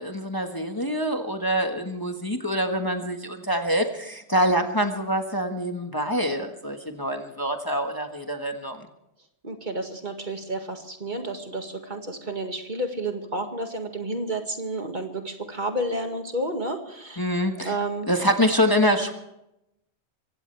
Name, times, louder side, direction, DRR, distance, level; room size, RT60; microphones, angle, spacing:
voice 1, 0.0-8.9 17.2-17.8 18.1-19.1, equal, 20° left, 4 dB, 1.4 m, -25 dB
voice 2, 9.4-17.2 17.6-18.1, right 1 dB, 45° right, 4 dB, 2.1 m, -31 dB
24.0 x 16.5 x 3.4 m, 0.85 s
omnidirectional pair, 1.1 m